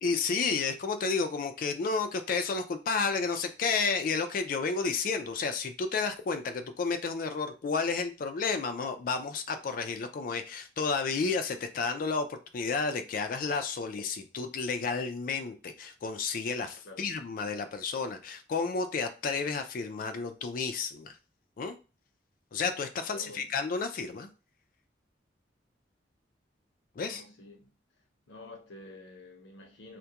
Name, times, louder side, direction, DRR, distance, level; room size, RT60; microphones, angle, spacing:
voice 1, 0.0-21.2 21.6-21.8 22.5-24.3 27.0-27.2, left 4 dB, 50° left, 0.3 m, -31 dB
voice 2, 23.1-23.5 27.0-27.8 28.3-30.0, left 2 dB, 80° left, 0.7 m, -49 dB
2.3 x 2.1 x 2.7 m
head